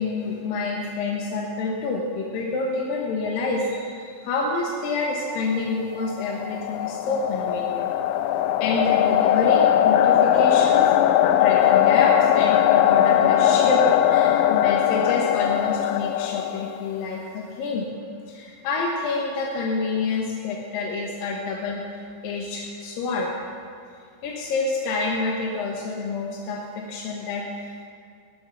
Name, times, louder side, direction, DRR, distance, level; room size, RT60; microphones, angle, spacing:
voice 1, 0.0-7.9 8.6-10.8 11.4-17.9 18.3-21.8 22.2-23.3 24.2-27.9, left 3 dB, 70° left, -2 dB, 2.4 m, -27 dB
sound 1, 6.0-16.9, left 11 dB, 85° left, 2.8 m, -20 dB
19.0 x 7.1 x 6.1 m, 2.2 s
omnidirectional pair, 5.2 m